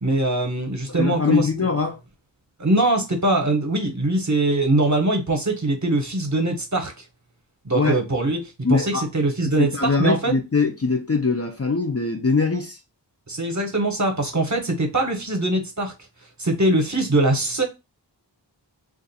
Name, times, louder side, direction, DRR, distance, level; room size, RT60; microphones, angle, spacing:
voice 1, 0.0-1.5 2.6-6.9 7.6-8.4 8.7-10.3 13.3-15.9 16.4-17.6, right 2 dB, 40° right, 1.0 m, -22 dB
voice 2, 1.0-2.0 7.7-8.0 8.6-9.0 9.6-12.8, left 4 dB, 35° left, 0.5 m, -22 dB
2.5 x 2.4 x 4.0 m
wide cardioid pair, 45°, 45 cm